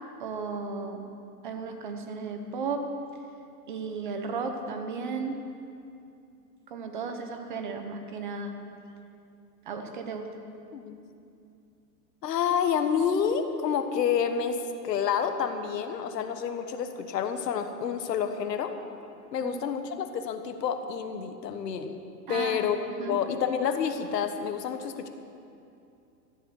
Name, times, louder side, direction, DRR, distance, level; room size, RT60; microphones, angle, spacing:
voice 1, 0.2-1.0 1.4-2.9 3.7-5.4 6.7-8.5 9.7-10.3 19.4-19.6 22.3-22.6 22.9-23.2, right 4 dB, 30° right, 6 dB, 0.7 m, -34 dB
voice 2, 12.2-18.7 19.3-22.0 22.3-25.1, left 7 dB, 85° left, 8 dB, 1.3 m, -29 dB
13.5 x 9.9 x 6.4 m, 2.6 s
supercardioid pair, 175°, 48 cm